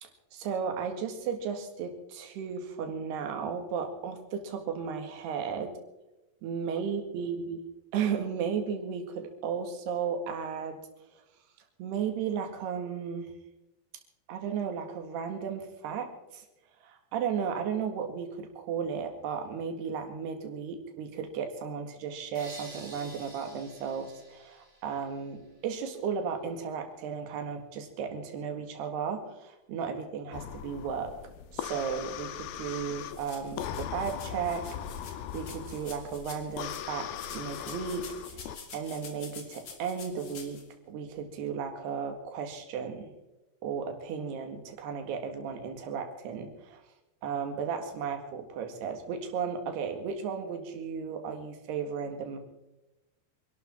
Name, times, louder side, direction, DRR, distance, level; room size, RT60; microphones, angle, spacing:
voice 1, 0.0-5.7 6.4-7.6 7.9-10.8 11.8-13.3 14.3-16.1 16.3-16.5 16.8-31.1 31.5-34.6 35.3-38.1 38.4-40.6 40.9-43.1 43.6-46.8 47.2-52.4, right 6 dB, 90° right, 6 dB, 3.8 m, -34 dB
sound 1, 22.3-25.4, right 1 dB, 50° right, 0.3 m, -49 dB
sound 2, 30.3-38.6, left 10 dB, 80° left, 2.6 m, -40 dB
sound 3, 33.0-36.9 37.1-40.6, left 5 dB, 45° left, 2.2 m, -48 dB
26.0 x 12.0 x 4.3 m, 1.0 s
omnidirectional pair, 4.5 m